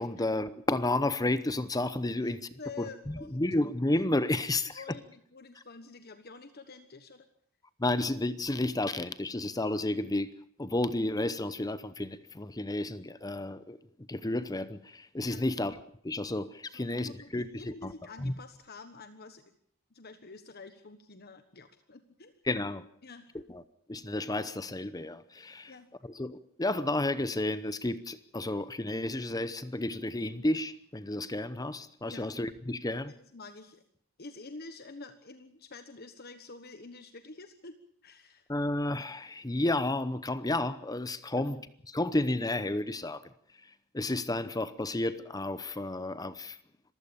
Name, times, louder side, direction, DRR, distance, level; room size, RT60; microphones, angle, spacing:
voice 1, 0.0-4.8 7.8-10.3 10.6-13.8 14.1-17.4 17.8-17.9 18.2-18.3 22.4-22.8 23.5-23.6 23.9-25.7 26.0-33.1 38.5-41.6 41.9-43.2 43.6-46.6, left 2 dB, 20° left, 0.8 m, -32 dB
voice 2, 2.2-3.4 4.4-7.3 15.2-15.5 16.7-19.5 19.9-22.3 23.0-23.4 25.7-25.9 32.0-32.3 33.1-33.8 34.2-37.7 38.0-38.5 41.4-41.6, left 3 dB, 50° left, 1.3 m, -48 dB
26.5 x 15.5 x 7.0 m
head